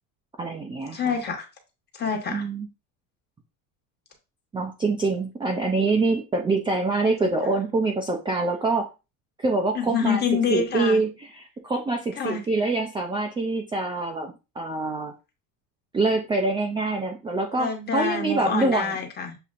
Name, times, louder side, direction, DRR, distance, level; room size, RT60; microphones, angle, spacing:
voice 1, 0.4-1.0 2.3-2.7 4.5-8.9 9.4-10.2 10.5-11.1 11.4-15.1 15.9-18.9, right 3 dB, 15° right, 2 dB, 0.4 m, -25 dB
voice 2, 0.9-1.5 1.9-2.4 7.0-7.1 9.7-11.0 12.2-12.4 17.5-19.4, left 5 dB, 25° left, 4 dB, 1.1 m, -27 dB
6.9 x 2.8 x 2.4 m, 0.28 s
cardioid pair, 140°, 39 cm